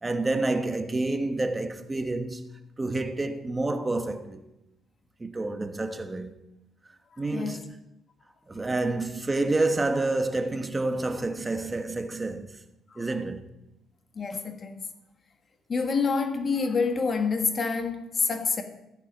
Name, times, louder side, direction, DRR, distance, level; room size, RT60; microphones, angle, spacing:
voice 1, 0.0-2.5 2.8-4.4 5.2-6.3 7.2-7.8 8.5-12.5 13.0-13.4, right 2 dB, 15° right, 1.1 m, -28 dB
voice 2, 7.2-7.6 12.9-13.1 14.1-14.9 15.7-18.6, left 4 dB, 35° left, 1.6 m, -27 dB
14.5 x 8.5 x 5.2 m
cardioid pair, 120°, 0 cm